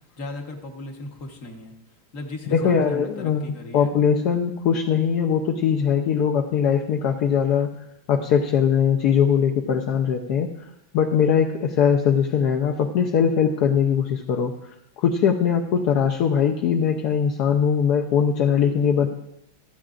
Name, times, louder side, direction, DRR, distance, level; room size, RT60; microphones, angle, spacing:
voice 1, 0.0-1.7 2.1-3.9, left 2 dB, 45° left, 3 dB, 1.6 m, -37 dB
voice 2, 2.5-7.7 8.1-14.5 15.0-19.1, left 7 dB, 65° left, 3 dB, 1.1 m, -21 dB
26.5 x 8.9 x 2.5 m, 0.82 s
omnidirectional pair, 2.2 m